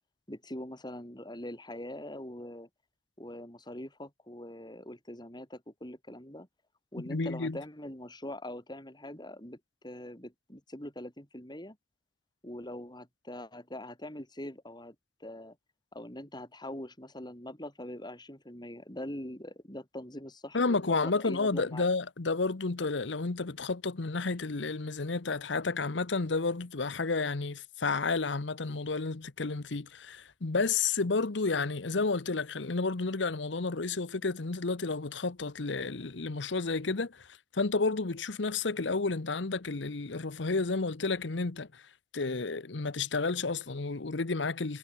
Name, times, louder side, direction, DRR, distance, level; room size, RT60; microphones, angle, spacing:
voice 1, 0.3-2.7 3.2-6.5 6.9-11.8 12.4-15.0 15.2-15.6 15.9-21.9, left 1 dB, 25° left, 7.3 m, -43 dB
voice 2, 7.1-7.6 20.5-37.3 37.5-41.8 42.1-44.8, left 3 dB, 75° left, 1.0 m, -31 dB
head